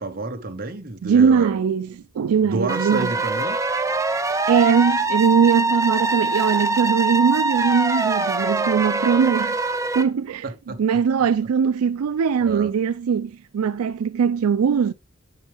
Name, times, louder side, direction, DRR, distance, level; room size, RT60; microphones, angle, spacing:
voice 1, 0.0-1.6 2.4-3.6 10.4-10.8 12.5-12.7, right 2 dB, 45° right, 0.9 m, -30 dB
voice 2, 1.0-3.1 4.5-9.6 9.9-14.9, right 7 dB, 85° right, 0.4 m, -20 dB
sound 1, 2.7-10.0, right 2 dB, 15° right, 0.4 m, -23 dB
9.1 x 4.5 x 3.3 m
head